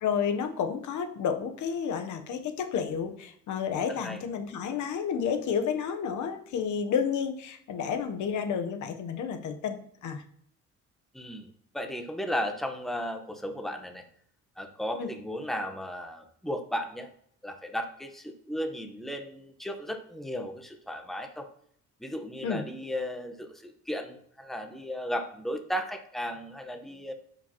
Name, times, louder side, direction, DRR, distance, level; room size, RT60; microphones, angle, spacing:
voice 1, 0.0-10.2 15.0-15.1 22.4-22.6, left 7 dB, 75° left, 7 dB, 0.9 m, -31 dB
voice 2, 11.1-11.5 11.7-14.0 14.6-17.1 17.4-21.5 22.0-27.1, equal, ahead, 5 dB, 1.0 m, -35 dB
9.3 x 5.2 x 2.9 m, 0.66 s
cardioid pair, 90°, 30 cm